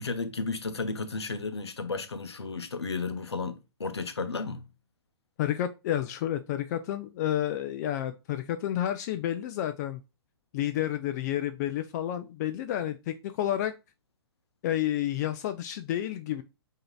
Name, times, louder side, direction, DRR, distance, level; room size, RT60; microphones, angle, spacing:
voice 1, 0.0-4.7, left 4 dB, 85° left, 0.8 m, -33 dB
voice 2, 5.4-10.0 10.5-13.7 14.6-16.4, left 12 dB, 40° left, 0.4 m, -30 dB
7.6 x 2.8 x 2.3 m
figure-of-eight pair, 120°, 14 cm